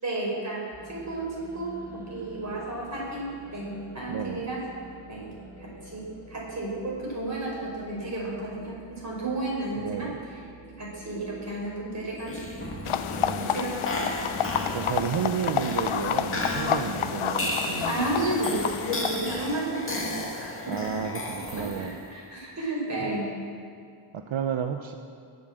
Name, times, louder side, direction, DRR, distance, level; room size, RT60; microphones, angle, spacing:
voice 1, 0.0-4.6 5.1-5.3 5.6-10.4 10.8-12.7 13.5-14.1 17.9-21.0 21.6-23.3, right 2 dB, 35° right, -4 dB, 5.3 m, -32 dB
sound 1, 0.7-17.6, right 2 dB, 5° right, 2.7 m, -48 dB
voice 2, 4.1-4.4 9.8-10.2 13.2-13.8 14.7-18.0 20.7-22.0 23.0-23.1 24.1-24.9, right 7 dB, 70° right, 6 dB, 0.8 m, -32 dB
sound 2, 12.2-22.1, left 1 dB, 25° left, 2.0 m, -34 dB
sound 3, 12.9-19.2, left 9 dB, 80° left, 0.8 m, -29 dB
20.0 x 8.0 x 7.6 m, 2.3 s
wide cardioid pair, 145°, 49 cm